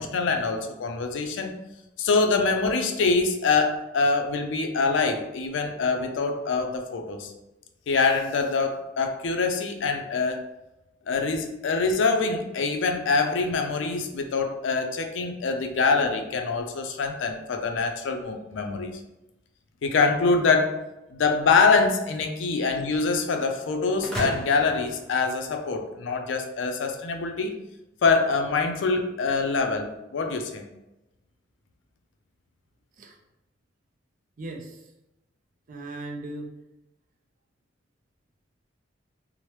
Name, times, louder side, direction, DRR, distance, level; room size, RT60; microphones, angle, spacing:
voice 1, 0.0-1.5 2.0-7.3 7.9-10.4 11.1-19.0 19.8-20.8 21.1-27.5 28.0-30.6, left 4 dB, 80° left, 4 dB, 0.4 m, -24 dB
sound 1, 24.0-26.0, equal, ahead, 0.7 m, -35 dB
voice 2, 34.4-34.9 35.7-36.5, right 2 dB, 45° right, 3 dB, 0.4 m, -38 dB
2.9 x 2.0 x 3.1 m, 0.94 s
head